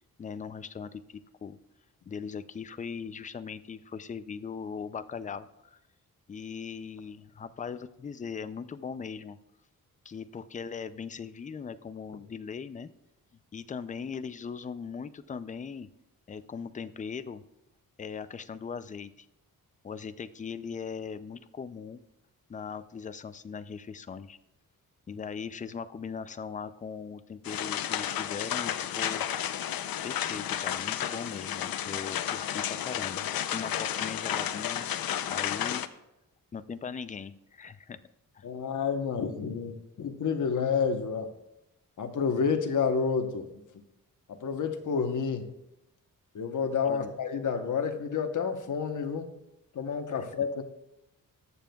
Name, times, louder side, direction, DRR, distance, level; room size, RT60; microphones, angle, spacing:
voice 1, 0.2-1.6 2.1-5.8 6.3-9.4 10.1-12.9 13.5-15.9 16.3-17.4 18.0-19.3 19.8-22.0 22.5-24.4 25.1-29.2 30.0-34.8 35.3-35.8 36.5-38.0 38.3-38.4 46.8-47.1, left 6 dB, 25° left, 13 dB, 0.3 m, -39 dB
sound 1, 27.4-35.9, left 10 dB, 80° left, 0.6 m, -32 dB
voice 2, 38.4-41.3 42.0-43.6 44.3-45.5 46.3-49.3 49.7-50.8, left 6 dB, 60° left, 6 dB, 1.0 m, -29 dB
20.5 x 7.0 x 2.3 m, 0.90 s
wide cardioid pair, 130°, 35 cm